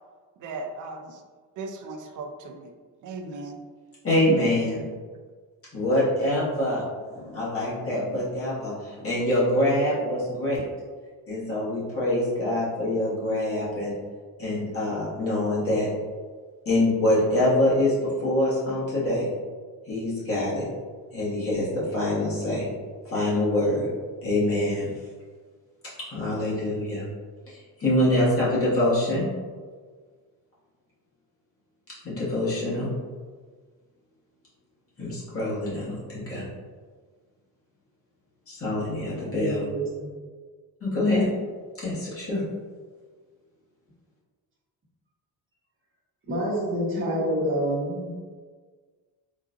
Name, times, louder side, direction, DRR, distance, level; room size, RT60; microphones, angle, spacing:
voice 1, 0.4-1.2 1.6-2.7 3.0-3.6, right 3 dB, 55° right, 4 dB, 0.5 m, -37 dB
voice 2, 4.0-4.8 5.7-6.8 7.1-10.6 11.3-13.9 14.4-15.9 16.6-19.3 19.9-20.7 21.1-22.7 23.0-23.9 24.2-24.9 26.0-27.1 27.5-29.3 32.0-32.9 35.0-36.4 38.5-39.7 40.8-41.3 41.8-42.4, left 1 dB, 35° left, -9 dB, 1.3 m, -25 dB
voice 3, 39.1-40.1 46.3-48.2, right 1 dB, 35° right, -7 dB, 1.1 m, -28 dB
3.9 x 2.4 x 2.5 m, 1.5 s
cardioid pair, 120°, 38 cm